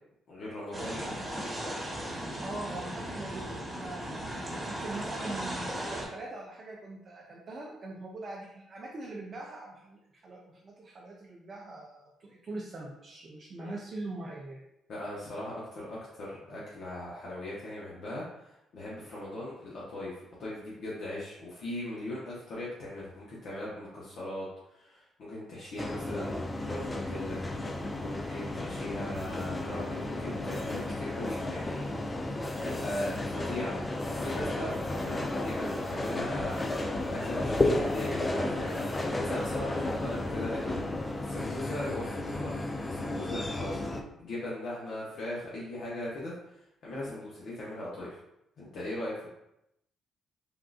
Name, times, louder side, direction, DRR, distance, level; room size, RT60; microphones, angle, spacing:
voice 1, 0.3-1.1 13.6-13.7 14.9-24.5 24.7-27.4 28.0-31.8 32.3-36.6 37.1-40.8 41.2-42.5 42.8-43.8 44.2-48.2 48.6-49.3, left 1 dB, 65° left, -7 dB, 0.8 m, -39 dB
sound 1, 0.7-6.1, right 1 dB, 20° right, 1.0 m, -37 dB
voice 2, 2.2-14.6, right 2 dB, 45° right, -2 dB, 0.5 m, -42 dB
sound 2, 25.8-44.0, left 2 dB, 20° left, 0.3 m, -33 dB
3.6 x 2.4 x 2.4 m, 0.84 s
cardioid pair, 90°, 0 cm